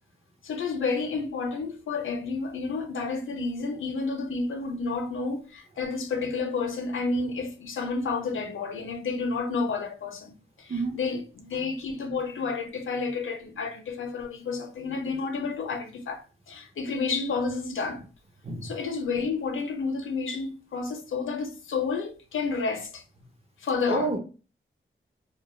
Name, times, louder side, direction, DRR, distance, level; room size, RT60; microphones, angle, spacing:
voice 1, 0.4-18.0 18.6-23.0 23.6-24.1, left 4 dB, 75° left, 0.5 m, -30 dB
voice 2, 23.9-24.2, right 2 dB, 30° right, 0.5 m, -28 dB
2.2 x 2.1 x 3.0 m
wide cardioid pair, 115°, 20 cm